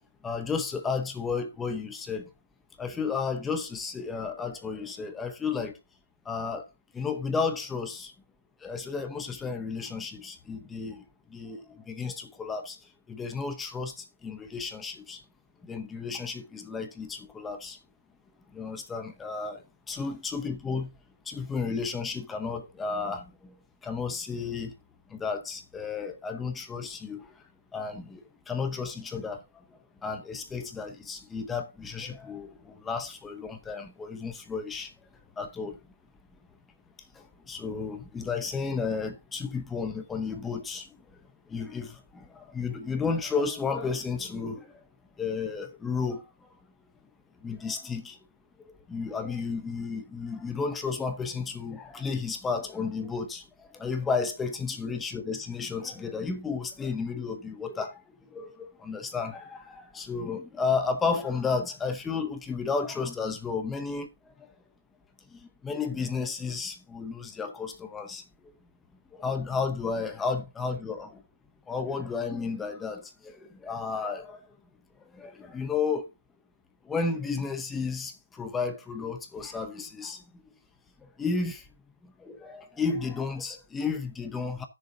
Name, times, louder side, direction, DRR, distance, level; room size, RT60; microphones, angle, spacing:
voice 1, 0.2-2.3 2.8-5.8 6.3-6.6 6.9-8.1 8.6-11.0 11.3-12.8 13.1-15.2 15.6-17.8 18.5-20.9 21.3-23.5 23.8-24.7 25.1-27.3 27.7-29.4 30.0-34.9 35.4-35.8 37.2-40.9 41.5-44.7 45.2-46.2 47.4-48.2 48.9-53.4 53.7-58.0 58.3-64.1 65.3-68.2 69.1-71.2 71.7-74.4 75.1-76.1 76.9-80.2 81.2-81.6 82.0-84.6, left 5 dB, 5° left, 0.8 m, -32 dB
16.0 x 6.7 x 2.7 m
hypercardioid pair, 170°, 0 cm